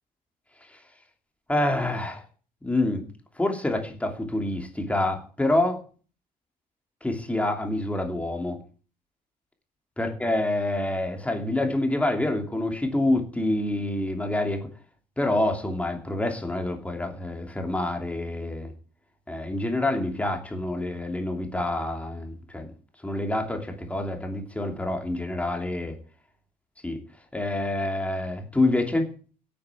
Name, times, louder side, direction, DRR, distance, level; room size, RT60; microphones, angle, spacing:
voice 1, 1.5-2.2 2.6-3.0 3.4-5.8 7.0-8.6 10.0-14.7 15.2-18.7 19.3-22.7 23.0-25.9 26.8-27.0 27.3-29.1, left 1 dB, 10° left, 3 dB, 2.9 m, -27 dB
17.0 x 8.7 x 8.4 m, 0.40 s
cardioid pair, 160°, 15 cm